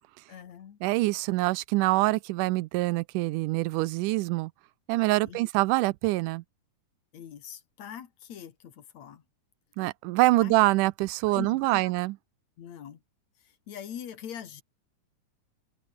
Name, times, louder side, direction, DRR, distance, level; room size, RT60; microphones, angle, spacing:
voice 1, 0.3-0.8 5.3-5.4 7.1-9.2 10.4-10.6 11.3-11.9 12.6-13.0 13.4-14.6, left 9 dB, 60° left, 3.0 m, -42 dB
voice 2, 0.8-4.5 4.9-6.4 9.8-12.1, right 20 dB, 90° right, 2.1 m, -25 dB
open air
omnidirectional pair, 3.6 m